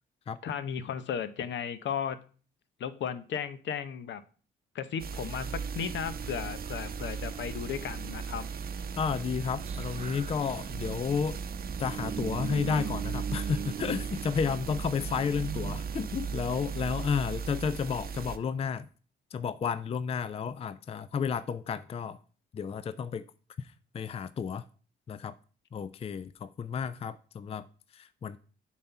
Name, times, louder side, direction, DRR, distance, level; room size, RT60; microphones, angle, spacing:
voice 1, 0.4-2.2 2.8-4.2 4.7-8.5, left 8 dB, 65° left, 0.8 m, -35 dB
sound 1, 5.0-18.4, right 5 dB, 50° right, 0.8 m, -38 dB
sound 2, 5.4-17.0, right 7 dB, 35° right, 0.4 m, -40 dB
voice 2, 9.0-11.4 11.8-18.9 19.3-22.2 22.5-23.2 23.6-24.6 25.1-25.3 25.7-27.7 27.9-28.4, left 6 dB, 30° left, 0.4 m, -32 dB
7.2 x 4.2 x 5.8 m
cardioid pair, 90°, 20 cm